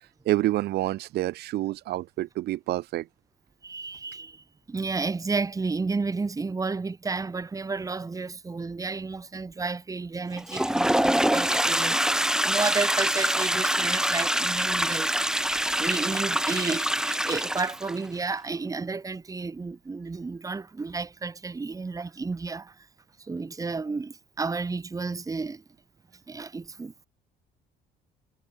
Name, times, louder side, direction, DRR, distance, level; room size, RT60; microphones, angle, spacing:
voice 1, 0.2-3.1, right 16 dB, 75° right, 2.7 m, -28 dB
voice 2, 3.6-22.9 23.2-25.6 26.3-27.1, right 4 dB, 20° right, 2.0 m, -32 dB
Toilet flush, 10.3-18.0, right 1 dB, 5° right, 3.7 m, -25 dB
cardioid pair, 110°, 17 cm